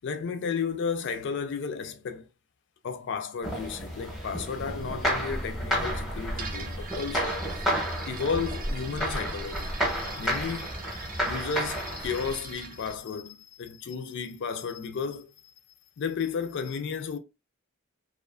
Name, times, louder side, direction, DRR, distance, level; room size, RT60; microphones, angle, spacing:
voice 1, 0.0-2.3 2.8-7.7 8.1-15.5 16.0-17.2, left 5 dB, 55° left, 0.4 m, -33 dB
sound 1, 2.8-4.1 4.6-9.8, right 2 dB, 85° right, 0.6 m, -47 dB
sound 2, 3.4-12.4, equal, ahead, 0.7 m, -31 dB
sound 3, 6.3-13.0, right 4 dB, 40° right, 0.5 m, -42 dB
2.4 x 2.3 x 2.3 m
head